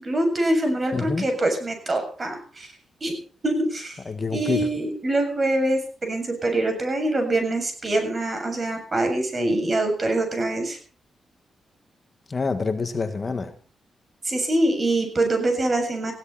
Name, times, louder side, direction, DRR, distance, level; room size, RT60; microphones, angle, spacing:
voice 1, 0.0-2.7 3.0-3.2 3.4-4.0 4.3-10.8 14.2-16.1, right 1 dB, 35° right, 5 dB, 7.3 m, -24 dB
voice 2, 0.9-1.3 4.0-4.7 12.3-13.5, left 4 dB, 35° left, 8 dB, 1.7 m, -26 dB
19.5 x 16.0 x 4.3 m, 0.41 s
cardioid pair, 100°, 0 cm